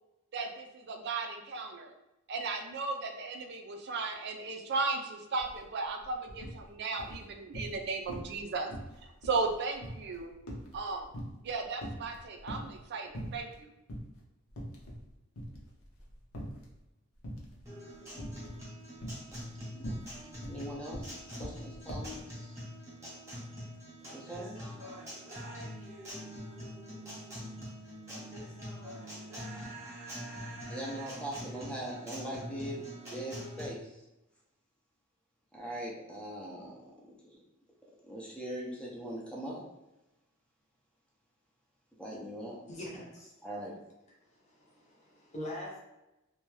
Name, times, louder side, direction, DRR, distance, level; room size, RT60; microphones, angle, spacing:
voice 1, 0.3-1.9 2.3-8.7 9.2-10.3 10.7-11.1 11.4-13.7, right 3 dB, 55° right, 4 dB, 0.4 m, -35 dB
sound 1, 5.4-5.6 5.9-6.6 7.0-7.8 8.1-8.4 8.7-11.5 11.8-12.8 13.1-13.6 13.9-14.1 14.5-15.1 15.3-16.7 17.2-17.6 18.2-18.6 19.0-22.2, equal, 75° left, 0.7 m, -42 dB
Guitar, 17.7-33.7, equal, 15° right, 0.9 m, -44 dB
voice 2, 19.6-20.0 20.5-21.1 21.4-22.6 24.1-24.7 30.7-34.0 35.5-37.4 38.0-39.6 42.0-42.6 43.4-43.8, right 1 dB, 5° left, -4 dB, 0.5 m, -41 dB
voice 3, 42.7-43.3 44.2-45.8, left 1 dB, 35° left, -3 dB, 0.8 m, -43 dB
2.6 x 2.2 x 3.1 m, 0.95 s
head